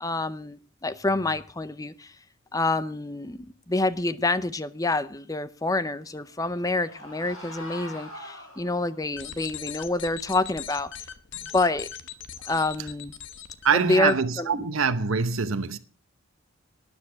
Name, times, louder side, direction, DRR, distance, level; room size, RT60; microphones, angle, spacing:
voice 1, 0.0-2.2 2.5-10.9 11.5-11.9 12.5-13.1 13.7-14.6, left 2 dB, 15° left, 0.6 m, -27 dB
sound 1, 6.1-9.1, left 1 dB, 80° left, 6.6 m, -43 dB
sound 2, 9.0-14.1, left 9 dB, 60° left, 1.1 m, -40 dB
voice 2, 13.6-15.8, right 5 dB, 70° right, 0.9 m, -24 dB
13.0 x 9.9 x 5.8 m
head